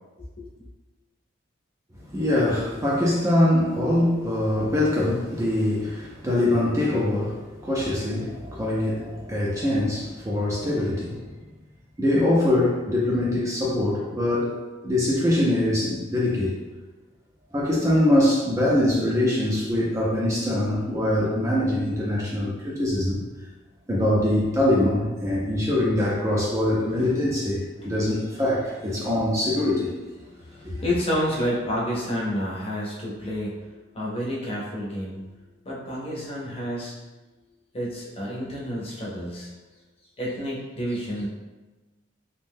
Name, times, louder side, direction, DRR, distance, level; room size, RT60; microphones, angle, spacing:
voice 1, 0.2-0.5 27.8-27.9 30.3-35.2 35.6-36.9 37.7-39.5 40.2-41.3, equal, 30° left, -5 dB, 0.6 m, -30 dB
voice 2, 2.1-11.2 12.0-16.6 17.5-23.2 23.9-29.9 30.6-30.7, left 1 dB, 15° right, -5 dB, 0.4 m, -23 dB
2.6 x 2.1 x 3.4 m, 1.2 s
head